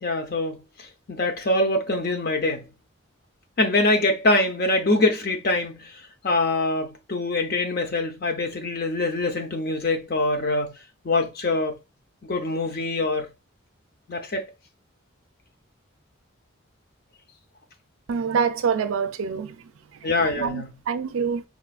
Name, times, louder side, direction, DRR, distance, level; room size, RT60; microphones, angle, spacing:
voice 1, 0.0-2.7 3.6-10.7 11.0-11.8 12.2-13.3 14.1-14.4 20.0-20.7, left 2 dB, 45° left, 0.6 m, -24 dB
voice 2, 18.1-20.1 20.3-21.4, right 6 dB, 85° right, 0.4 m, -26 dB
4.3 x 2.4 x 2.4 m
head